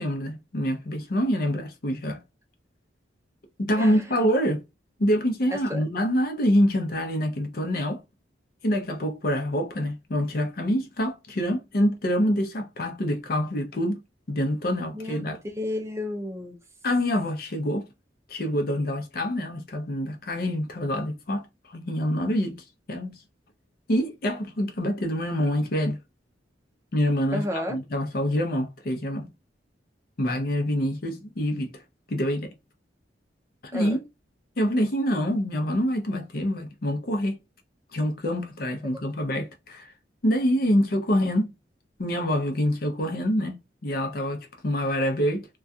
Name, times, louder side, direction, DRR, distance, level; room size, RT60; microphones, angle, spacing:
voice 1, 0.0-2.2 3.6-4.6 5.0-8.0 8.6-14.0 14.3-15.4 16.8-17.9 18.3-23.2 23.9-26.0 26.9-29.3 30.2-31.7 32.1-32.5 33.6-34.0 34.6-37.4 37.9-39.9 40.2-41.5 42.0-45.5, equal, 55° left, 0.6 m, -26 dB
voice 2, 3.8-4.2 5.5-5.8 14.9-16.6 27.3-27.8 33.7-34.0, left 1 dB, 15° right, 0.5 m, -32 dB
2.3 x 2.3 x 2.6 m
head